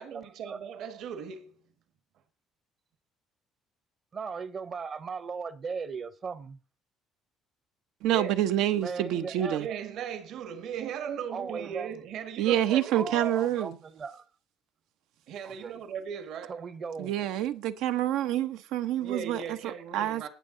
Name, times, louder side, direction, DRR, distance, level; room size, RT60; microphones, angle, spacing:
voice 1, 0.0-1.6 8.0-8.4 9.6-13.3 15.3-16.7 19.0-20.3, right 8 dB, 55° right, 1.5 m, -38 dB
voice 2, 4.1-6.6 8.8-9.6 11.3-11.9 12.6-14.3 15.4-15.8 16.5-17.2, right 5 dB, 30° right, 0.8 m, -37 dB
voice 3, 8.0-9.7 12.4-13.8 17.0-20.3, right 12 dB, 80° right, 0.9 m, -27 dB
18.5 x 6.6 x 3.8 m
cardioid pair, 170°, 0 cm